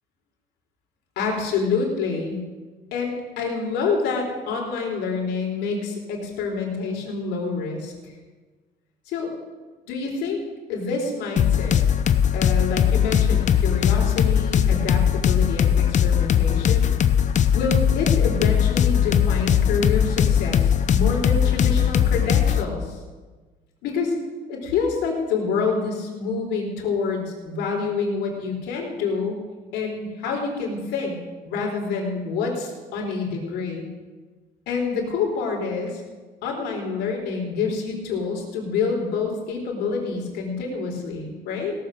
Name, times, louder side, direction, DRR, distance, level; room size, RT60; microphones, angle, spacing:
voice 1, 1.2-2.4 2.9-8.1 9.1-9.3 9.8-10.4 10.7-11.8 12.3-16.9 17.5-23.0 23.8-24.1 24.5-29.4 29.7-31.2 31.4-33.9 34.7-36.0 36.4-41.7, left 4 dB, 85° left, 0 dB, 3.7 m, -27 dB
sound 1, 11.4-22.6, left 9 dB, 45° left, 0.7 m, -19 dB
17.5 x 7.6 x 6.4 m, 1.3 s
cardioid pair, 110°, 17 cm